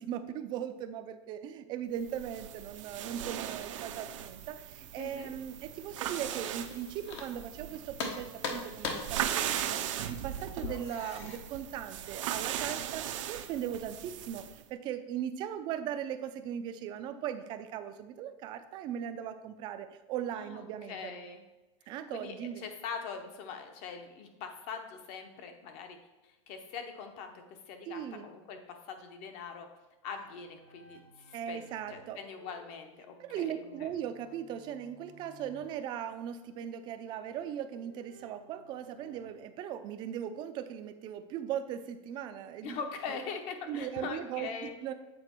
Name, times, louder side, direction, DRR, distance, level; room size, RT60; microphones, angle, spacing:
voice 1, 0.0-21.1 21.9-22.6 27.9-28.3 31.3-32.2 33.2-42.8 43.1-43.2 43.7-44.9, right 9 dB, 30° right, 9 dB, 0.4 m, -39 dB
sound 1, 2.0-14.6, right 11 dB, 75° right, 0.6 m, -38 dB
voice 2, 5.0-5.3 20.4-21.4 21.8-26.0 26.2-29.7 30.0-33.9 42.6-44.8, left 5 dB, 40° left, 6 dB, 0.9 m, -42 dB
sound 2, 6.3-7.6 8.0-11.4, left 4 dB, 60° left, 1.1 m, -40 dB
sound 3, 30.1-39.3, right 1 dB, 85° left, 2.4 m, -58 dB
7.8 x 4.0 x 4.4 m, 1.1 s
supercardioid pair, 160°, 16 cm